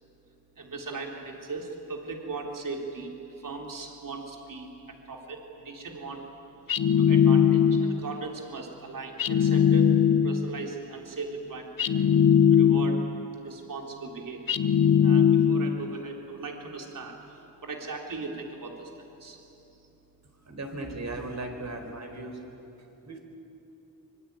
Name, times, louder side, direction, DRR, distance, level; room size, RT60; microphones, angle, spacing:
voice 1, 0.6-6.2 6.9-9.9 10.2-11.9 12.5-13.0 13.4-14.6 15.0-18.9 19.2-19.4, right 3 dB, 75° right, 1 dB, 3.6 m, -38 dB
sound 1, 6.7-8.0 9.2-10.5 11.8-13.2 14.5-15.8, left 8 dB, 80° left, 1.0 m, -20 dB
voice 2, 20.4-22.4 23.0-23.2, right 2 dB, 55° right, 3 dB, 4.8 m, -37 dB
25.0 x 23.5 x 9.5 m, 3.0 s
wide cardioid pair, 85°, 33 cm